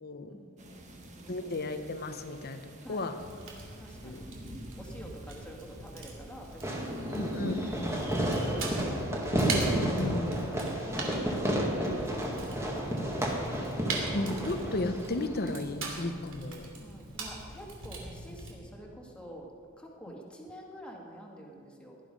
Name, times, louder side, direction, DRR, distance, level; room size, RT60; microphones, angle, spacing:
voice 1, 0.3-1.4 2.8-3.2 3.8-4.2 4.8-9.2 10.8-13.9 16.8-19.5 19.8-22.0, equal, 5° left, -2 dB, 2.1 m, -48 dB
sound 1, 0.6-8.5, equal, 35° right, 1.5 m, -44 dB
voice 2, 1.3-3.2 4.0-4.2 7.1-7.9 10.0-10.6 14.1-16.7, left 2 dB, 50° left, 9 dB, 0.9 m, -34 dB
Fire, 3.2-18.5, right 3 dB, 65° right, 2.7 m, -42 dB
Fireworks, 6.6-15.6, right 1 dB, 15° right, 1.8 m, -31 dB
17.5 x 11.5 x 5.3 m, 2.3 s
head